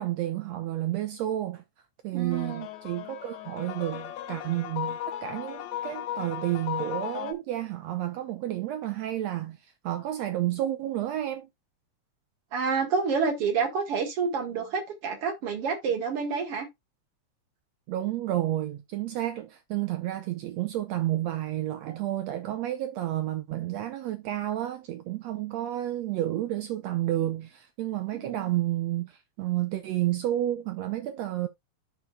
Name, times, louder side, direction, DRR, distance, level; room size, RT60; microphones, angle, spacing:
voice 1, 0.0-1.6 2.0-11.5 17.9-31.5, right 13 dB, 80° right, 1.6 m, -31 dB
voice 2, 2.1-2.7 12.5-16.7 28.1-28.5, right 5 dB, 50° right, 2.3 m, -28 dB
sound 1, 2.3-7.3, left 11 dB, 75° left, 1.9 m, -36 dB
12.5 x 4.5 x 2.2 m
omnidirectional pair, 3.6 m